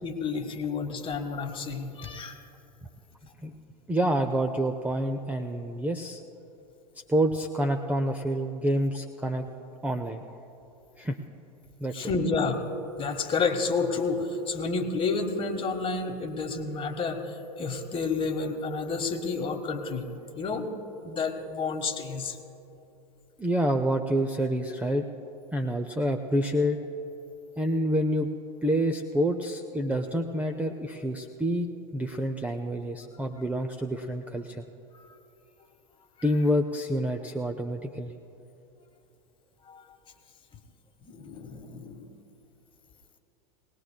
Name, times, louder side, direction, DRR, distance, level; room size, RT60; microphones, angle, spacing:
voice 1, 0.0-2.4 11.9-12.7 13.0-20.7 21.0-22.4 39.7-39.8 41.0-42.1, left 4 dB, 25° left, 6 dB, 1.3 m, -30 dB
voice 2, 3.9-6.2 7.1-9.5 9.8-10.2 11.0-11.2 11.8-12.1 23.4-25.0 25.5-26.8 27.6-28.3 28.6-34.6 36.2-38.1, equal, 5° right, 6 dB, 0.5 m, -28 dB
21.0 x 18.5 x 2.2 m, 2.8 s
hypercardioid pair, 95°, 21 cm